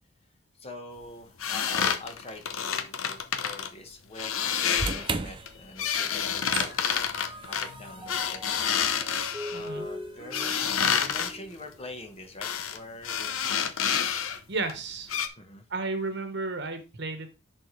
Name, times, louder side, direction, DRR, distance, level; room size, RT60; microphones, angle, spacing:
voice 1, 0.6-6.5 7.1-8.4 9.5-13.7 15.4-15.7, left 2 dB, 30° left, 4 dB, 1.2 m, -45 dB
sound 1, 1.4-3.7 4.1-5.1 5.5-9.7 10.3-11.3 12.4-12.8 13.0-14.4 14.7-14.8 15.1-15.3, left 8 dB, 75° left, 0.8 m, -28 dB
sound 2, 4.7-11.0, right 4 dB, 25° right, 0.5 m, -38 dB
Mallet percussion, 5.4-6.3 6.7-12.1, left 1 dB, 10° right, 1.2 m, -43 dB
voice 2, 9.5-9.8 14.5-15.1 15.7-17.3, right 3 dB, 55° right, 7 dB, 1.2 m, -32 dB
10.5 x 4.2 x 3.3 m, 0.30 s
head